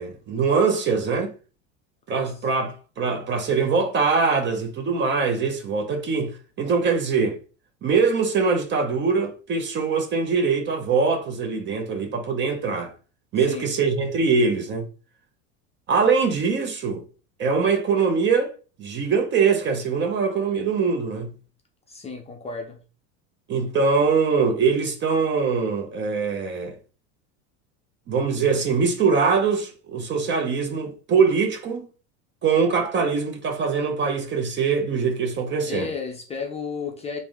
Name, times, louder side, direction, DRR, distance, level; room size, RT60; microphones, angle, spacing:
voice 1, 0.0-1.3 2.1-7.4 7.8-12.9 13.3-14.9 15.9-17.0 17.4-21.3 23.5-26.8 28.1-31.9 32.4-35.9, right 5 dB, 30° right, 0.6 m, -23 dB
voice 2, 13.4-13.7 21.9-22.8 35.6-37.2, left 5 dB, 20° left, 0.5 m, -33 dB
3.4 x 2.6 x 3.5 m
supercardioid pair, 130°, 36 cm